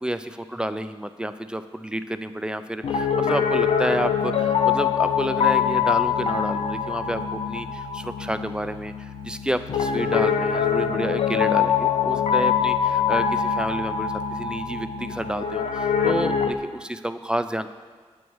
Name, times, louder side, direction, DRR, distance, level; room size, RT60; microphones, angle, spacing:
voice 1, 0.0-17.7, right 1 dB, 10° right, 10 dB, 0.4 m, -30 dB
Piano, 2.8-16.5, left 7 dB, 70° left, 0.6 m, -24 dB
8.2 x 7.0 x 4.7 m, 1.5 s
cardioid pair, 75°, 11 cm